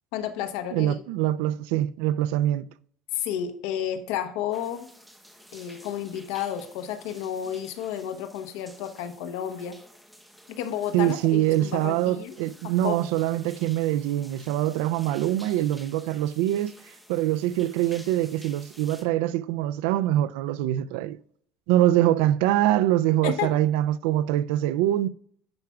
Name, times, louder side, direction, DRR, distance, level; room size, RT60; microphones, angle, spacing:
voice 1, 0.1-1.0 3.1-4.9 5.5-9.8 10.5-12.4 12.6-13.0 23.2-23.5, left 10 dB, 80° left, 1.0 m, -31 dB
voice 2, 0.7-2.6 10.9-16.7 17.1-21.2 21.7-25.1, right 13 dB, 85° right, 0.3 m, -24 dB
sound 1, 4.5-19.0, equal, ahead, 0.9 m, -51 dB
10.5 x 5.8 x 2.3 m
cardioid pair, 165°, 0 cm